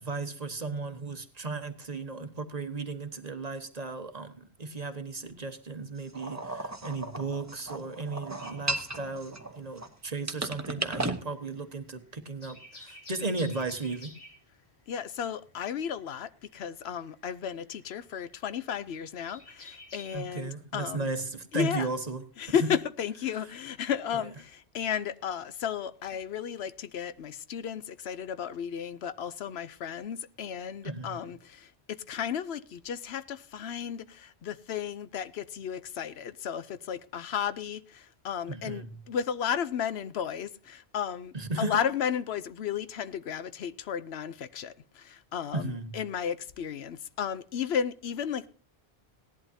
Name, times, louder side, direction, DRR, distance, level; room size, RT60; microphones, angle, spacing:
voice 1, 0.0-14.1 20.1-22.6 24.1-24.2 30.8-31.3 38.5-38.9 41.3-41.8 45.5-46.0, right 3 dB, 40° right, 1.2 m, -35 dB
sound 1, 6.1-9.9 10.3-11.2, right 2 dB, 15° right, 0.8 m, -35 dB
sound 2, 8.4-9.8 10.1-20.2, left 1 dB, 60° left, 3.1 m, -51 dB
voice 2, 14.9-21.1 21.5-21.9 22.4-48.5, left 8 dB, 80° left, 0.9 m, -34 dB
17.5 x 11.0 x 2.7 m
omnidirectional pair, 1.1 m